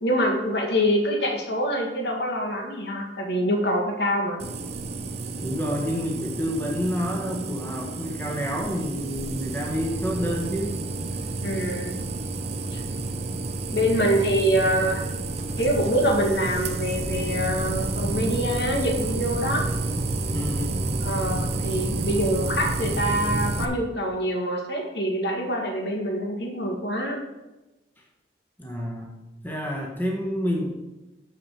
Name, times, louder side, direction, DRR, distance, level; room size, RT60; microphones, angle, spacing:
voice 1, 0.0-4.4 11.4-12.0 12.7-12.8 13.7-15.0 15.6-19.7 20.7-20.8 21.0-27.2, equal, 60° left, 1 dB, 1.9 m, -25 dB
sound 1, 4.4-23.7, right 2 dB, 35° right, 0.6 m, -30 dB
voice 2, 5.4-10.8 20.3-20.8 28.6-29.1 29.4-30.7, equal, 10° left, -1 dB, 1.4 m, -29 dB
7.2 x 6.5 x 5.6 m, 1.1 s
head